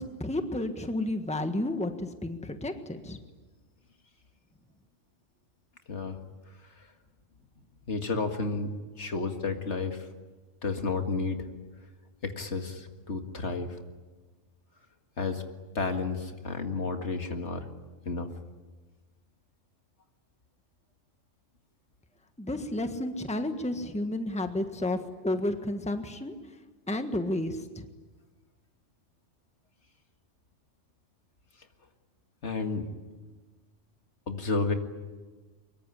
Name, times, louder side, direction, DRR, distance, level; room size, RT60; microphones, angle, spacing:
voice 1, 0.0-3.2 22.4-26.4 26.9-27.9, left 1 dB, 5° left, 7 dB, 1.4 m, -31 dB
voice 2, 7.9-8.7 9.0-10.1 10.6-11.5 12.2-13.8 15.2-15.4 15.7-17.7 18.1-18.3 32.4-32.9 34.3-34.7, left 4 dB, 65° left, 5 dB, 2.2 m, -31 dB
24.0 x 22.5 x 10.0 m, 1.3 s
omnidirectional pair, 1.3 m